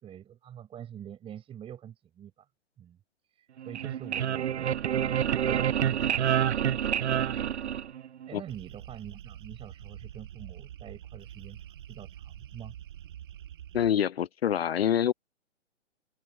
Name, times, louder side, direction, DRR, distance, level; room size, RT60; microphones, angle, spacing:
voice 1, 0.0-2.5 2.8-3.0 3.3-6.9 8.3-12.7, right 10 dB, 15° right, 6.0 m, -46 dB
sound 1, 3.6-8.3, right 9 dB, 65° right, 0.6 m, -28 dB
sound 2, 8.5-13.9, right 11 dB, 45° right, 1.9 m, -46 dB
voice 2, 13.7-15.1, left 9 dB, 55° left, 0.4 m, -26 dB
open air
figure-of-eight pair, 130°, 37 cm